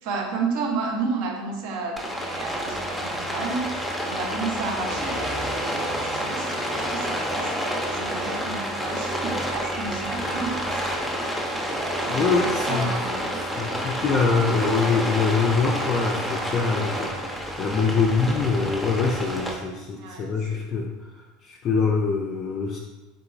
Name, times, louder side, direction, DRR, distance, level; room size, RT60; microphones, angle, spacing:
voice 1, 0.0-3.7 4.1-7.5 7.9-11.3 12.0-13.3 19.9-20.6, right 4 dB, 55° right, 2 dB, 0.7 m, -32 dB
Rain, 2.0-19.5, equal, ahead, 0.6 m, -29 dB
voice 2, 12.1-13.0 13.5-20.9 21.4-22.8, left 4 dB, 40° left, 0 dB, 0.4 m, -24 dB
3.8 x 3.7 x 2.5 m, 1.1 s
figure-of-eight pair, 75°, 0 cm